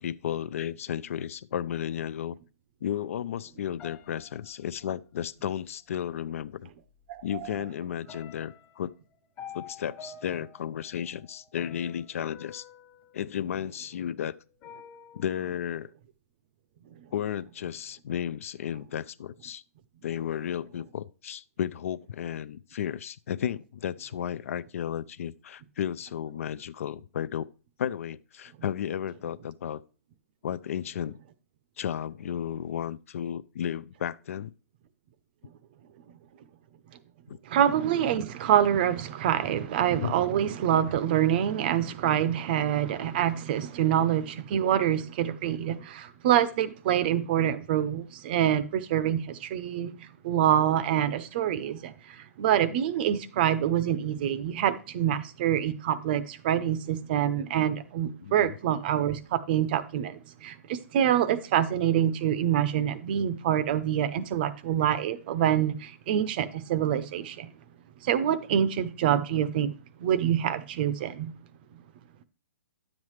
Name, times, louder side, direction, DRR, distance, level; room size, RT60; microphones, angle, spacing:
voice 1, 0.0-2.4 2.8-6.7 7.2-8.9 9.5-12.6 13.1-14.4 15.1-15.9 17.1-19.6 20.0-27.5 27.8-29.8 30.4-31.2 31.8-34.5 37.3-37.4 39.9-40.2 58.2-58.5, left 9 dB, 55° left, 0.4 m, -33 dB
sound 1, 3.8-5.3 6.4-6.5 7.0-7.6 8.1-14.0 14.6-15.4, left 6 dB, 20° left, 1.3 m, -49 dB
voice 2, 7.1-7.5 37.5-49.9 50.2-67.5 68.0-69.7 70.0-71.3, right 10 dB, 35° right, 0.6 m, -26 dB
10.5 x 7.3 x 3.2 m
hypercardioid pair, 160°, 9 cm